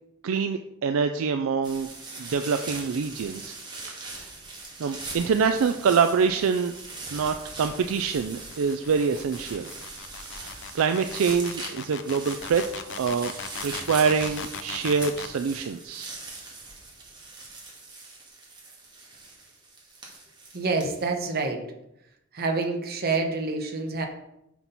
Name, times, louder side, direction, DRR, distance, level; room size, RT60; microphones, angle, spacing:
voice 1, 0.2-1.9 2.2-3.6 3.8-4.3 4.8-6.7 7.1-9.7 10.4-13.3 13.6-16.2, right 5 dB, 70° right, 7 dB, 0.4 m, -25 dB
sound 1, 1.6-21.1, right 3 dB, 20° right, 1.6 m, -41 dB
sound 2, 6.1-15.4, left 7 dB, 60° left, 0.5 m, -39 dB
voice 2, 20.5-21.7 22.3-24.1, right 3 dB, 45° right, 3 dB, 1.1 m, -27 dB
6.0 x 5.9 x 4.0 m, 0.83 s
head